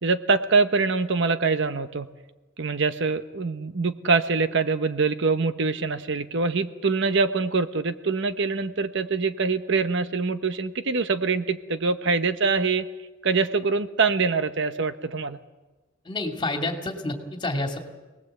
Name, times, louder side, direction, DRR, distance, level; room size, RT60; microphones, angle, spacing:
voice 1, 0.0-2.1 2.6-12.9 13.2-15.4, right 4 dB, 65° right, 10 dB, 1.0 m, -24 dB
voice 2, 16.0-17.8, left 2 dB, 25° left, 3 dB, 2.6 m, -29 dB
26.0 x 19.0 x 8.0 m, 1.2 s
head